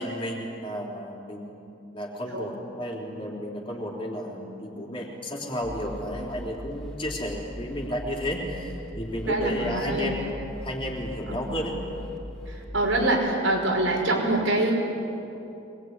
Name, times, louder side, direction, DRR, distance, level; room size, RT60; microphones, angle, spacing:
voice 1, 0.0-1.7 1.9-10.2 10.6-11.7, equal, 25° left, -2 dB, 3.9 m, -32 dB
sound 1, 5.6-13.1, equal, 5° left, 4.6 m, -40 dB
voice 2, 9.3-10.2 11.3-11.7 12.5-14.7, right 2 dB, 80° right, -1 dB, 5.8 m, -25 dB
25.0 x 20.5 x 9.8 m, 2.8 s
head